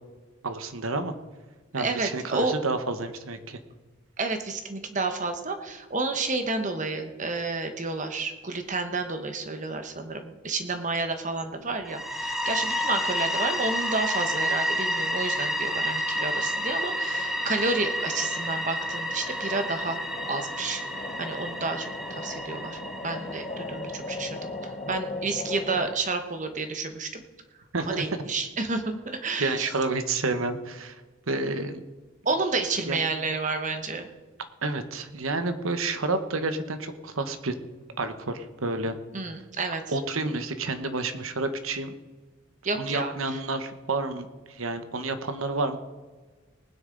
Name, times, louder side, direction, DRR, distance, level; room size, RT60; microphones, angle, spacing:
voice 1, 0.4-1.1 1.7-3.6 27.7-28.0 29.4-31.0 31.3-31.8 32.8-33.0 34.6-37.6 38.0-39.0 39.9-42.0 42.7-45.8, right 3 dB, 80° right, 9 dB, 1.1 m, -30 dB
voice 2, 1.8-2.5 4.2-20.0 20.3-20.8 21.2-27.2 27.8-29.7 32.2-34.1 39.1-39.8 42.6-43.1, right 3 dB, 35° right, 7 dB, 1.2 m, -30 dB
sound 1, 11.6-25.9, left 2 dB, 30° left, 0.9 m, -40 dB
sound 2, 11.9-24.6, equal, ahead, 0.9 m, -30 dB
19.5 x 9.6 x 3.9 m, 1.3 s
head